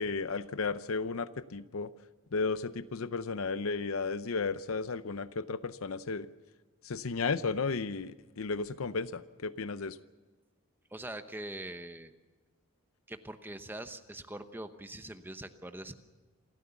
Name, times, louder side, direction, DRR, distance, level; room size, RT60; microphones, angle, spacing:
voice 1, 0.0-1.9 2.3-6.3 6.8-10.0, left 4 dB, 70° left, 14 dB, 0.6 m, -34 dB
voice 2, 10.9-12.1 13.1-15.9, right 1 dB, 10° right, 9 dB, 0.9 m, -43 dB
28.0 x 13.5 x 7.0 m, 1.3 s
head